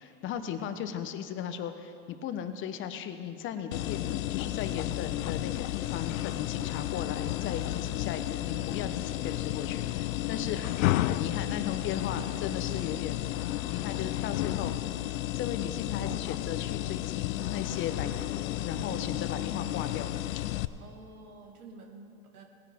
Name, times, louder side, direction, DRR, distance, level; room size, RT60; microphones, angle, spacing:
voice 1, 0.0-13.3 13.7-14.8 15.3-20.2, left 8 dB, 25° left, 10 dB, 0.7 m, -37 dB
sound 1, 3.7-20.6, left 15 dB, 60° left, 0.6 m, -32 dB
voice 2, 20.8-22.4, right 3 dB, 75° right, 1 dB, 2.2 m, -49 dB
18.5 x 9.8 x 3.5 m, 2.6 s
hypercardioid pair, 110°, 46 cm